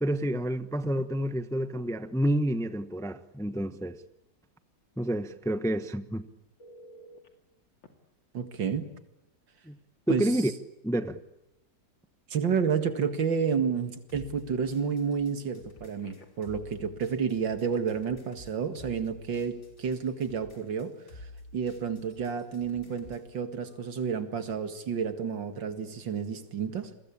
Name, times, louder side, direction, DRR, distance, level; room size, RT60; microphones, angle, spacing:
voice 1, 0.0-4.0 5.0-6.3 9.7-9.8 10.1-10.5 10.8-11.2, right 1 dB, 5° left, 0.7 m, -29 dB
Telephone, 6.6-7.3 7.8-7.9 9.7-9.8 10.2-10.4 15.7-16.5 23.7-23.9, right 1 dB, 90° left, 3.3 m, -53 dB
voice 2, 8.3-8.9 10.1-10.3 12.3-20.9 21.5-26.9, right 6 dB, 80° right, 2.6 m, -30 dB
sound 1, 14.1-23.3, left 1 dB, 35° left, 5.8 m, -50 dB
30.0 x 22.5 x 8.7 m
omnidirectional pair, 2.0 m